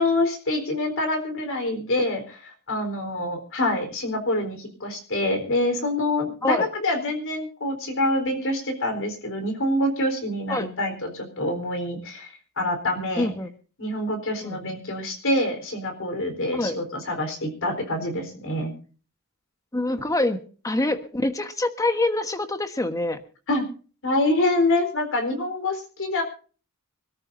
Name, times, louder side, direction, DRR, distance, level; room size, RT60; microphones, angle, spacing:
voice 1, 0.0-13.3 13.8-18.7 23.5-23.7 24.0-26.2, left 1 dB, 65° left, 5 dB, 4.2 m, -26 dB
voice 2, 13.2-13.5 14.4-14.6 16.5-16.8 19.7-23.2, left 2 dB, 15° left, 8 dB, 1.3 m, -25 dB
26.0 x 13.5 x 2.7 m, 0.38 s
head